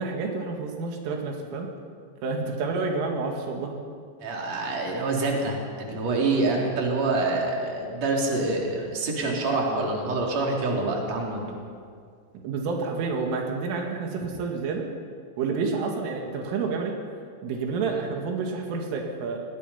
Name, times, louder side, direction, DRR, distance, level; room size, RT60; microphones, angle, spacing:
voice 1, 0.0-1.7 2.2-3.8 12.3-14.9 15.4-16.9 17.4-19.4, right 4 dB, 90° right, 1 dB, 4.7 m, -29 dB
voice 2, 4.2-11.5 17.9-18.0, right 2 dB, 35° right, -1 dB, 4.2 m, -26 dB
28.5 x 20.0 x 5.8 m, 2.2 s
omnidirectional pair, 5.6 m